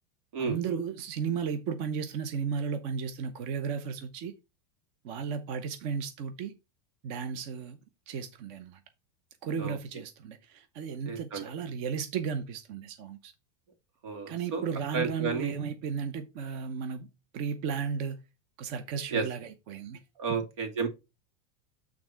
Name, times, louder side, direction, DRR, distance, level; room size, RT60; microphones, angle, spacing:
voice 1, 0.4-4.3 5.0-6.5 7.0-7.8 8.1-8.8 9.4-13.3 14.3-17.1 17.3-18.2 18.6-20.0, right 6 dB, 40° right, 0.7 m, -34 dB
voice 2, 11.1-11.5 14.0-14.6 14.9-15.5 19.1-19.2 20.2-20.9, right 5 dB, 85° right, 2.5 m, -31 dB
8.6 x 3.6 x 4.4 m
supercardioid pair, 175°, 15 cm